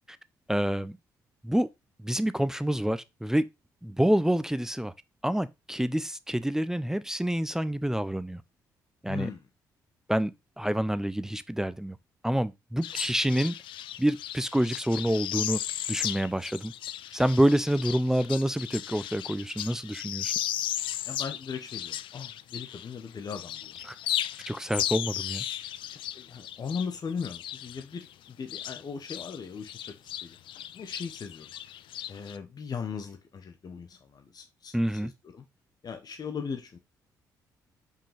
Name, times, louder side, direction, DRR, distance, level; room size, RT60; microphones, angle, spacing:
voice 1, 0.5-1.0 1.4-1.7 2.0-3.5 3.8-4.9 5.2-8.4 9.0-9.3 10.1-10.3 10.6-12.0 12.2-13.5 14.0-15.6 15.9-16.7 17.1-20.3 23.9-24.0 24.5-25.4 34.7-35.1, right 1 dB, 5° right, 0.6 m, -27 dB
voice 2, 9.1-9.4 21.1-23.7 24.7-24.8 25.9-28.1 28.4-30.4 30.7-31.5 32.1-34.8 35.0-35.4 35.8-36.8, left 6 dB, 45° left, 1.0 m, -38 dB
sound 1, 12.8-23.0 23.3-29.4 29.6-32.4, left 12 dB, 60° left, 0.4 m, -36 dB
5.4 x 5.2 x 3.4 m
hypercardioid pair, 45°, 9 cm